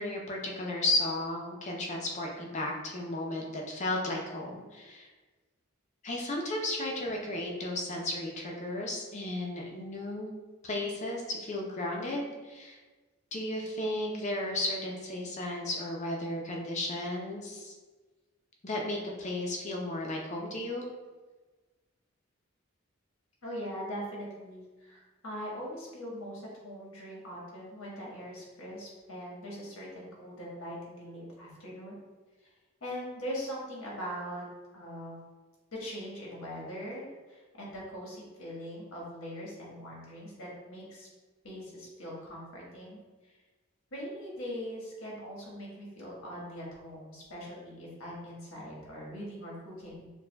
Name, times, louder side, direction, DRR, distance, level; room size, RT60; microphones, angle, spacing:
voice 1, 0.0-5.1 6.0-10.3 10.6-12.8 13.3-17.7 18.6-20.8, left 1 dB, 35° left, 0 dB, 0.6 m, -34 dB
voice 2, 23.4-32.0 32.4-32.5 32.8-34.5 34.7-35.2 35.7-41.1 41.4-43.4 43.9-50.1, equal, 80° left, -4 dB, 1.4 m, -41 dB
6.6 x 2.3 x 2.3 m, 1.3 s
head